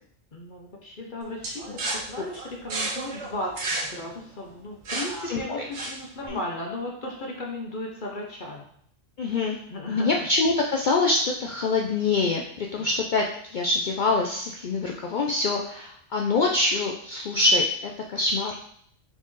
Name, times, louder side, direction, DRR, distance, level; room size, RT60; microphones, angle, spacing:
voice 1, 0.3-8.6 9.7-10.3 12.8-12.9, left 1 dB, 45° left, -1 dB, 0.8 m, -36 dB
sound 1, 1.4-6.3, right 2 dB, 60° right, 1.1 m, -33 dB
voice 2, 5.2-5.7 6.3-6.4 9.2-9.6 9.9-13.2 13.5-18.6, left 3 dB, 80° left, 0 dB, 0.4 m, -25 dB
4.1 x 3.9 x 3.1 m, 0.65 s
omnidirectional pair, 1.4 m